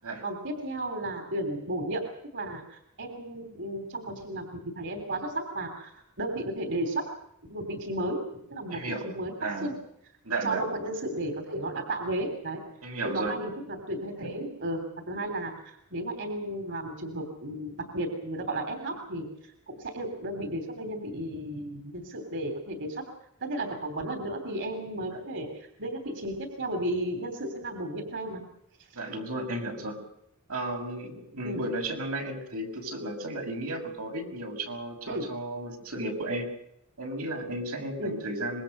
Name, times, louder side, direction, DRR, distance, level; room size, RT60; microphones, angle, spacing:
voice 1, 0.2-2.0 2.3-4.5 4.8-7.1 7.5-8.2 8.5-9.3 9.6-9.8 10.4-12.6 13.1-23.0 23.4-28.4 28.9-29.0 31.4-31.6 35.1-35.3 38.0-38.1, right 1 dB, 60° right, 6 dB, 3.3 m, -34 dB
voice 2, 8.7-9.1 9.4-9.7 10.2-10.6 12.8-13.3 28.9-30.0 30.5-36.5 37.0-38.6, right 2 dB, 85° right, 2 dB, 6.3 m, -33 dB
25.5 x 22.0 x 6.7 m, 0.78 s
head